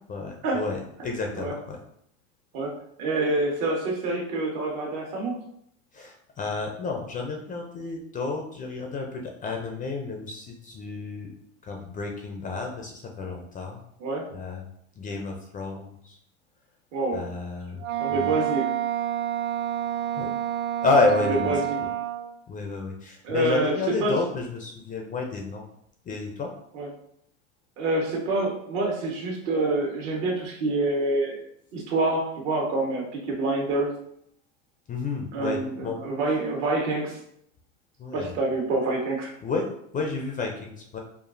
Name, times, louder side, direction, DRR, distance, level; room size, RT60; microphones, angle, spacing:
voice 1, 0.1-1.8 5.9-11.3 11.6-13.8 14.3-14.7 15.0-16.2 17.1-17.8 18.1-18.3 20.2-20.3 20.8-21.9 22.5-25.6 26.1-26.5 34.9-36.0 38.0-38.3 39.4-39.7 39.9-41.0, left 3 dB, 20° left, 2 dB, 0.4 m, -30 dB
voice 2, 3.0-5.3 14.0-14.3 16.9-17.2 18.0-18.7 21.4-21.8 23.2-23.7 24.0-24.1 26.7-26.9 27.8-31.4 31.7-33.9 35.3-37.2 38.1-39.3, right 2 dB, 65° right, 0 dB, 1.4 m, -26 dB
Wind instrument woodwind instrument, 17.8-22.3, right 11 dB, 40° right, 0.5 m, -28 dB
5.0 x 2.4 x 2.6 m, 0.71 s
supercardioid pair, 115°, 40 cm